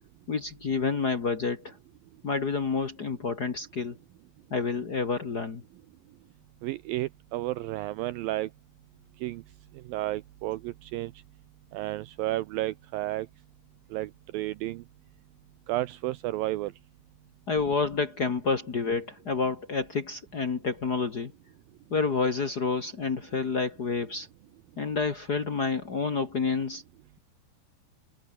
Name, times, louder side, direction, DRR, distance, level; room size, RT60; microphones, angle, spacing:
voice 1, 0.3-1.8 2.2-4.0 4.5-5.6 17.5-21.3 21.9-24.3 24.8-26.8, left 4 dB, 60° left, 1.0 m, -29 dB
voice 2, 6.6-8.5 9.2-9.4 9.8-11.1 11.7-13.3 13.9-14.8 15.7-16.7, right 16 dB, 90° right, 2.1 m, -32 dB
omnidirectional pair, 4.8 m